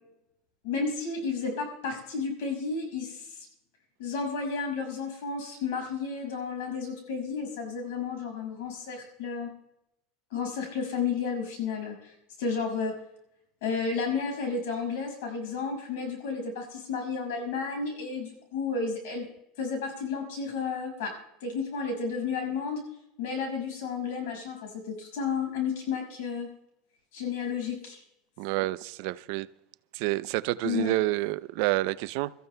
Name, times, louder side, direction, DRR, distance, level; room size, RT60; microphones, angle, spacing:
voice 1, 0.6-3.5 4.0-9.5 10.3-12.9 13.6-19.3 19.6-21.1 21.4-22.8 23.2-26.5 27.1-28.0 30.6-30.9, left 5 dB, 85° left, 5.6 m, -32 dB
voice 2, 28.4-29.5 29.9-32.3, right 18 dB, 65° right, 0.4 m, -28 dB
28.5 x 14.0 x 2.2 m
supercardioid pair, 150°, 0 cm